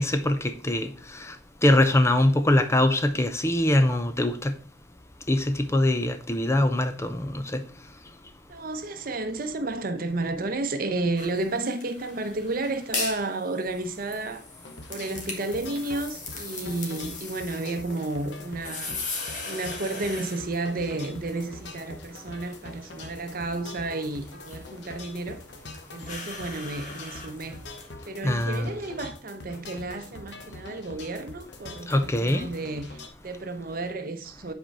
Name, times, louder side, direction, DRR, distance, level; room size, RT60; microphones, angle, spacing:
voice 1, 0.0-1.3 1.6-4.6 5.3-7.6 28.2-28.7 31.9-32.5, left 1 dB, 15° left, 0.5 m, -23 dB
voice 2, 8.5-14.4 14.9-19.0 19.4-25.4 25.9-27.6 28.0-34.5, right 2 dB, 55° right, 0.8 m, -32 dB
sound 1, 11.2-27.9, left 3 dB, 45° left, 1.7 m, -40 dB
sound 2, 14.7-33.1, left 2 dB, 75° left, 1.0 m, -44 dB
7.9 x 4.4 x 4.7 m
head